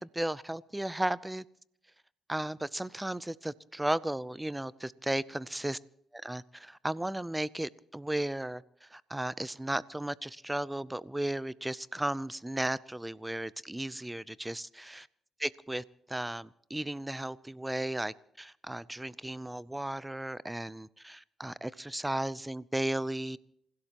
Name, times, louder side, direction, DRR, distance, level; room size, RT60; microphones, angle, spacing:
voice 1, 0.0-1.4 2.3-5.8 6.1-15.1 15.4-23.4, right 1 dB, 10° right, 19 dB, 0.6 m, -35 dB
27.0 x 16.0 x 3.0 m, 0.70 s
cardioid pair, 90°, 0 cm